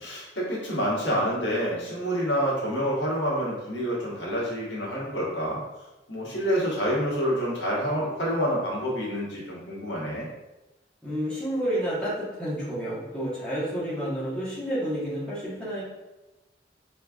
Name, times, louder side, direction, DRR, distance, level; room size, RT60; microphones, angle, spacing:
voice 1, 0.0-5.6 6.1-10.3, equal, 90° left, -6 dB, 1.4 m, -27 dB
voice 2, 11.0-15.8, equal, 5° left, -10 dB, 1.3 m, -30 dB
4.6 x 3.2 x 2.4 m, 1.1 s
head